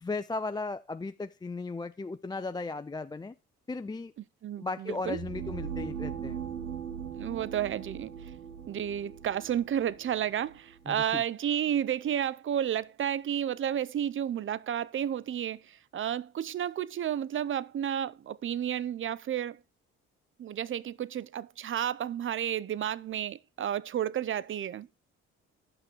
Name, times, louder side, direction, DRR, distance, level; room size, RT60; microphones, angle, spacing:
voice 1, 0.0-3.3 3.7-4.1 4.6-6.4 10.9-11.2, left 3 dB, 15° left, 0.4 m, -36 dB
voice 2, 4.4-5.2 7.2-8.1 8.7-19.6 20.4-24.9, right 10 dB, 40° right, 0.5 m, -31 dB
sound 1, 4.9-10.8, right 8 dB, 75° right, 1.9 m, -40 dB
10.0 x 6.0 x 4.5 m
supercardioid pair, 65°, 30 cm